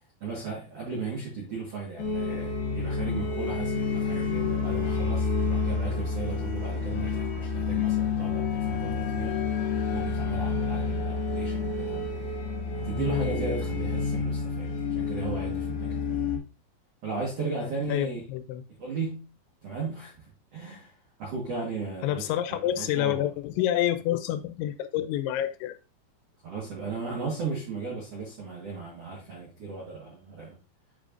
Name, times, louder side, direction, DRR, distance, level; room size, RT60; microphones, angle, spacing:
voice 1, 0.2-9.4 9.9-12.1 12.8-16.4 17.0-18.2 18.8-19.3 19.6-20.9 21.2-23.3 26.4-30.5, right 4 dB, 90° right, 1.3 m, -36 dB
sound 1, 2.0-16.4, left 5 dB, 65° left, 2.8 m, -29 dB
voice 2, 13.0-13.4 17.9-18.6 22.0-25.8, left 12 dB, 85° left, 3.0 m, -28 dB
8.1 x 4.9 x 2.5 m
omnidirectional pair, 5.3 m